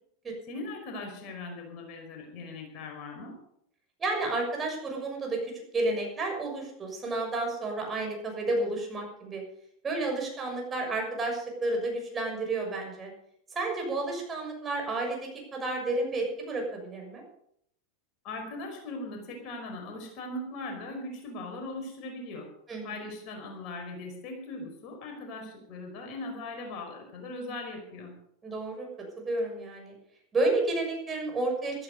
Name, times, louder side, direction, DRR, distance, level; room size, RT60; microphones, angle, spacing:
voice 1, 0.5-3.3 18.2-22.5 22.8-28.1, left 2 dB, 45° left, 2 dB, 5.1 m, -39 dB
voice 2, 4.0-9.4 9.8-13.1 13.5-17.2 22.7-23.0 28.4-28.9 29.2-29.9 30.3-31.8, right 2 dB, 20° right, 1 dB, 6.6 m, -31 dB
15.0 x 13.5 x 5.4 m, 0.72 s
figure-of-eight pair, 85°, 0 cm